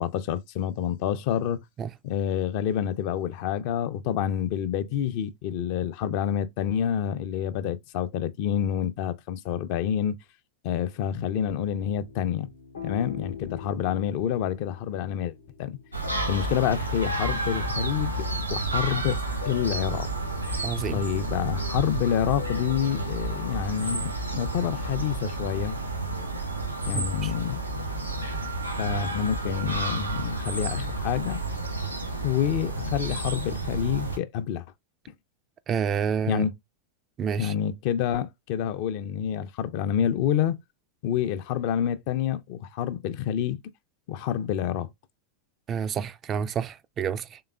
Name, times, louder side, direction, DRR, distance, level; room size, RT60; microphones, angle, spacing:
voice 1, 0.0-1.6 2.0-10.2 10.6-12.5 12.8-15.3 15.6-15.8 16.3-18.1 18.5-20.1 20.9-25.8 26.8-27.6 28.8-31.4 32.2-34.7 36.3-36.5 37.4-40.6 41.0-43.6 44.1-44.9, left 9 dB, 45° left, 0.5 m, -28 dB
sound 1, 11.5-24.2, left 5 dB, 70° left, 0.8 m, -44 dB
sound 2, 15.9-34.2, right 2 dB, 90° right, 1.2 m, -31 dB
voice 2, 20.6-21.0 26.9-27.3 35.7-36.4 37.2-37.5 45.7-47.4, right 7 dB, 25° right, 0.3 m, -29 dB
3.8 x 3.5 x 2.2 m
figure-of-eight pair, 90°, 0 cm